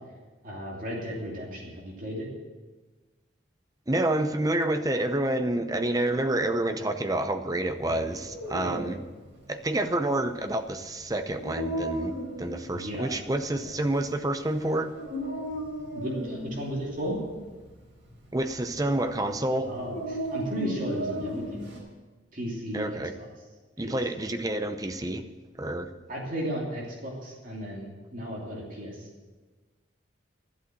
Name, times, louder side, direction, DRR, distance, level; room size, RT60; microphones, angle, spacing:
voice 1, 0.4-2.3 7.8-8.0 8.6-8.8 12.7-13.2 13.6-13.7 15.9-17.2 19.7-21.6 22.3-23.3 23.8-24.0 26.1-29.1, equal, 45° right, -3 dB, 2.9 m, -35 dB
voice 2, 3.9-9.0 9.5-14.9 18.3-19.8 22.7-23.1 23.8-25.2 25.6-25.9, right 1 dB, 20° right, 8 dB, 0.7 m, -28 dB
Dog, 8.0-21.8, right 1 dB, 75° right, 4.6 m, -36 dB
12.5 x 8.4 x 7.7 m, 1.3 s
head